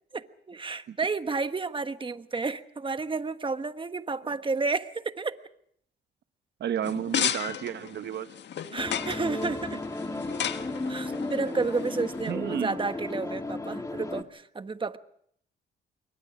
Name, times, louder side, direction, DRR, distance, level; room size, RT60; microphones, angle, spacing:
voice 1, 0.1-5.4 8.7-9.8 10.9-15.0, right 4 dB, 25° right, 1.3 m, -31 dB
voice 2, 6.6-8.3 12.3-12.8, right 9 dB, 60° right, 1.0 m, -32 dB
sound 1, 6.8-12.3, left 9 dB, 65° left, 1.6 m, -34 dB
sound 2, 8.8-14.2, left 2 dB, 15° left, 2.0 m, -34 dB
28.0 x 23.5 x 4.9 m
cardioid pair, 90°, 20 cm